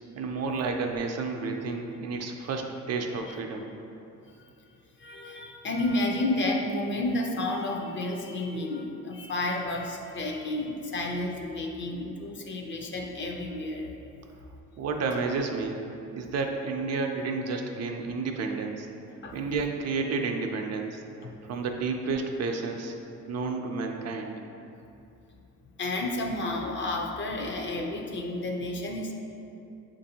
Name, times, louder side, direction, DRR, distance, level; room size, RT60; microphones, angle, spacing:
voice 1, 0.2-3.6 14.8-15.8 16.1-18.9 19.3-21.0 21.4-22.9 23.3-24.4, right 4 dB, 55° right, 3 dB, 0.4 m, -31 dB
voice 2, 5.0-13.9 19.2-19.4 21.2-21.3 25.8-29.1, left 2 dB, 40° left, 1 dB, 0.5 m, -31 dB
6.9 x 2.6 x 2.7 m, 2.8 s
cardioid pair, 125°, 31 cm